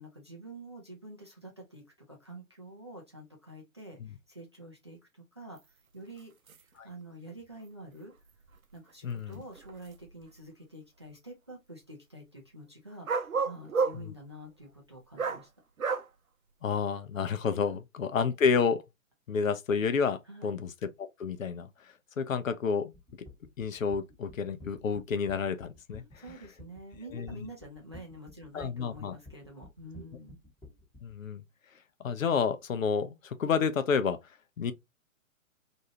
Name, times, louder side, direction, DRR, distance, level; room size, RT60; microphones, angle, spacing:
voice 1, 0.0-5.6 5.9-8.1 8.7-15.5 20.3-20.5 26.2-30.4, right 1 dB, 25° right, 0.3 m, -48 dB
sound 1, 5.6-5.7 6.2-6.3 6.5-6.6 7.6-7.7 8.5-8.6 9.3-10.3 13.1-14.0 15.2-15.4 15.8-16.1, right 5 dB, 85° right, 0.6 m, -31 dB
voice 2, 9.0-9.4 13.9-14.1 16.6-18.8 19.3-20.7 21.0-22.9 23.6-26.2 27.1-27.3 28.5-29.2 31.0-31.4 32.0-34.2 34.6-34.7, left 6 dB, 75° left, 0.6 m, -30 dB
sound 2, 22.9-31.2, left 2 dB, 5° left, 0.7 m, -51 dB
2.7 x 2.2 x 2.8 m
figure-of-eight pair, 130°, 41 cm